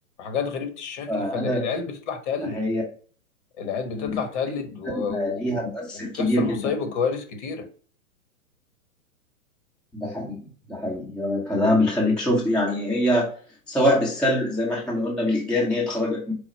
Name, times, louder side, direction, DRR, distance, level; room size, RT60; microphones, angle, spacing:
voice 1, 0.2-2.6 3.6-5.6 5.9-7.7, left 6 dB, 50° left, 1.2 m, -29 dB
voice 2, 1.1-1.7 2.4-2.8 4.0-4.2 5.1-6.7 9.9-10.4 10.7-13.3 13.7-16.3, left 1 dB, ahead, 0.7 m, -24 dB
4.9 x 2.2 x 4.2 m
hypercardioid pair, 130°, 44 cm